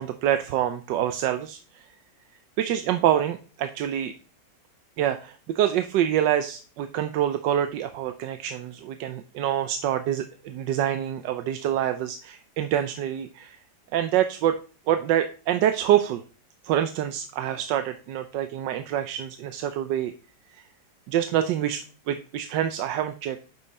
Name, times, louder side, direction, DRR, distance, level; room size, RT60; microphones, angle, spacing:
voice 1, 0.0-1.9 2.6-4.1 5.0-13.6 13.9-14.6 14.9-16.2 16.6-20.1 20.5-20.7 21.1-23.4, right 11 dB, 90° right, 9 dB, 1.3 m, -26 dB
9.6 x 5.5 x 4.1 m, 0.37 s
omnidirectional pair, 1.9 m